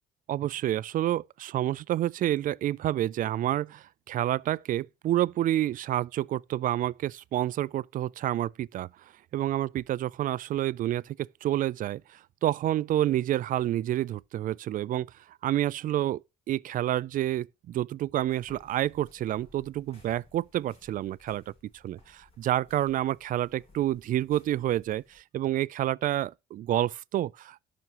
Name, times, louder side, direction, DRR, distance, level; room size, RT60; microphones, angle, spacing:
voice 1, 0.3-8.9 9.3-15.1 15.4-16.2 16.5-21.5 21.8-27.6, right 13 dB, 55° right, 0.4 m, -29 dB
sound 1, 18.2-25.2, left 2 dB, 35° left, 7.7 m, -59 dB
18.0 x 6.1 x 3.0 m
cardioid pair, 110°, 17 cm